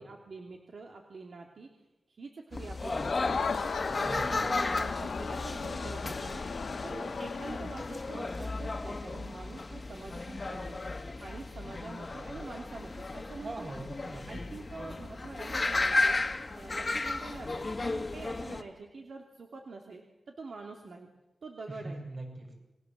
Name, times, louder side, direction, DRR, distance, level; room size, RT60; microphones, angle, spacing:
voice 1, 0.0-1.7 2.1-3.5 3.9-6.4 6.8-10.8 11.2-13.7 14.1-16.2 16.5-21.1 21.4-22.0, right 3 dB, 65° right, 2 dB, 2.8 m, -46 dB
sound 1, 2.5-18.6, left 3 dB, 30° left, 1.7 m, -34 dB
Crowd, 2.9-8.2, left 5 dB, 80° left, 1.7 m, -36 dB
voice 2, 4.0-4.4 13.4-14.3 21.8-22.6, right 2 dB, 45° right, 2 dB, 7.4 m, -41 dB
28.5 x 22.0 x 7.6 m, 0.98 s
wide cardioid pair, 130°, 0 cm